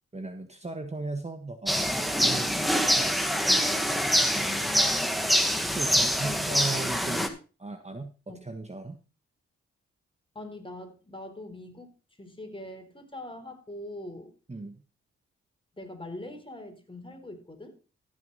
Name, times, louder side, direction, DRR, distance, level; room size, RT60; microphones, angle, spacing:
voice 1, 0.1-3.6 4.8-5.1 5.6-7.3 7.6-9.0 14.5-14.8, right 3 dB, 20° right, 7 dB, 1.4 m, -37 dB
sound 1, 1.7-7.3, equal, ahead, 1.9 m, -25 dB
voice 2, 4.3-5.4 6.2-6.7 7.0-7.1 8.3-8.5 10.3-11.9 12.2-14.3 15.8-17.7, left 1 dB, 15° left, 5 dB, 3.9 m, -42 dB
15.0 x 6.6 x 4.1 m, 0.34 s
supercardioid pair, 40°, 30 cm